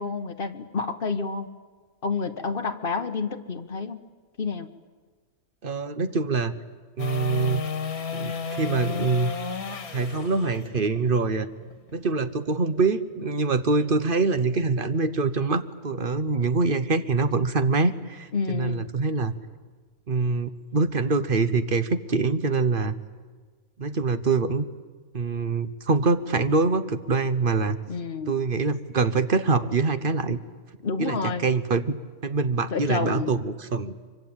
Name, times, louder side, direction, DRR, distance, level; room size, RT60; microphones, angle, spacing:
voice 1, 0.0-1.5 2.0-4.0 4.4-4.7 18.3-18.9 27.9-28.3 30.8-31.5 32.7-33.3, left 4 dB, 40° left, 8 dB, 1.5 m, -29 dB
voice 2, 5.6-6.5 7.0-7.6 8.1-9.3 9.9-11.5 11.9-19.3 20.1-22.9 23.8-24.6 25.1-27.8 28.3-30.4 31.0-32.0 32.2-33.9, right 4 dB, 40° right, 11 dB, 1.1 m, -24 dB
sound 1, 7.0-13.1 19.7-19.8, left 6 dB, 80° left, 2.1 m, -33 dB
24.5 x 24.5 x 8.9 m, 1.4 s
omnidirectional pair, 1.5 m